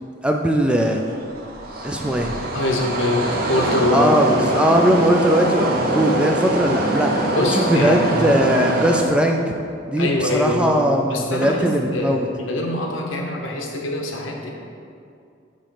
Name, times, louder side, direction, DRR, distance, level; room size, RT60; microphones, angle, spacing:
voice 1, 0.2-1.0 1.8-2.4 3.9-7.1 7.5-9.5 9.9-12.3, equal, 5° right, 2 dB, 0.3 m, -19 dB
sound 1, 0.7-9.0, right 1 dB, 50° right, 0.7 m, -23 dB
voice 2, 2.5-4.1 7.3-8.4 10.0-10.8 11.1-14.5, left 2 dB, 90° left, 1 dB, 0.9 m, -24 dB
6.6 x 3.1 x 5.7 m, 2.4 s
head